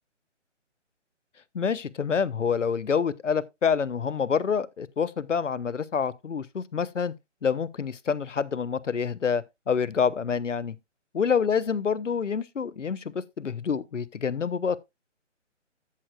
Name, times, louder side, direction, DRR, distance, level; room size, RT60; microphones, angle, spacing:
voice 1, 1.5-7.1 7.4-10.8 11.1-14.8, left 6 dB, 75° left, 0.7 m, -27 dB
14.0 x 6.6 x 2.3 m
figure-of-eight pair, 140°, 37 cm